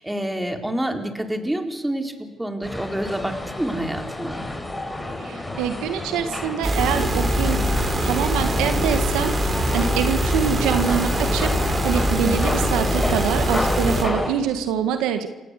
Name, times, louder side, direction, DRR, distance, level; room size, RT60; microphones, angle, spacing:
voice 1, 0.0-4.4, right 1 dB, 10° right, 4 dB, 4.1 m, -28 dB
sound 1, 2.6-14.3, left 1 dB, 15° left, 6.8 m, -29 dB
voice 2, 5.2-7.6 8.0-11.5 11.8-15.3, right 8 dB, 85° right, 8 dB, 1.7 m, -25 dB
sound 2, 6.6-14.0, equal, 35° right, 4.8 m, -23 dB
28.5 x 17.5 x 8.3 m, 1.2 s
supercardioid pair, 65°, 0 cm